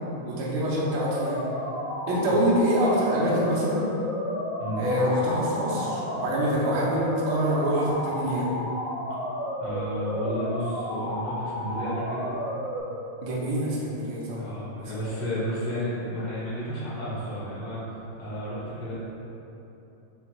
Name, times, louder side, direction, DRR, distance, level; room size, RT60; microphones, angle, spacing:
voice 1, 0.2-1.4 2.1-4.0 4.8-8.5 13.2-15.1, equal, 75° right, -7 dB, 1.9 m, -26 dB
sound 1, 0.8-12.8, left 1 dB, 65° left, 1.7 m, -32 dB
voice 2, 9.6-12.3 14.4-17.8 18.2-18.9, equal, 45° left, -11 dB, 1.6 m, -32 dB
5.8 x 3.5 x 2.2 m, 3.0 s
omnidirectional pair, 3.5 m